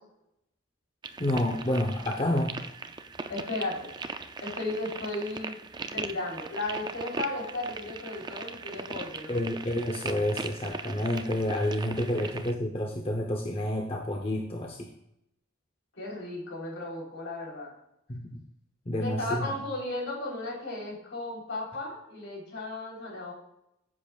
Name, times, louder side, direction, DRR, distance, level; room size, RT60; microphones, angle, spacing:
sound 1, 1.0-12.5, right 4 dB, 20° right, 0.4 m, -39 dB
voice 1, 1.2-2.6 9.3-14.9 18.1-18.4 18.9-19.5, left 1 dB, 30° left, 2 dB, 0.7 m, -29 dB
voice 2, 3.3-3.9 4.4-5.6 5.9-9.4 12.2-12.3 16.0-17.7 18.9-23.3, left 2 dB, 70° left, -3 dB, 3.7 m, -35 dB
14.5 x 7.4 x 2.4 m, 0.80 s
head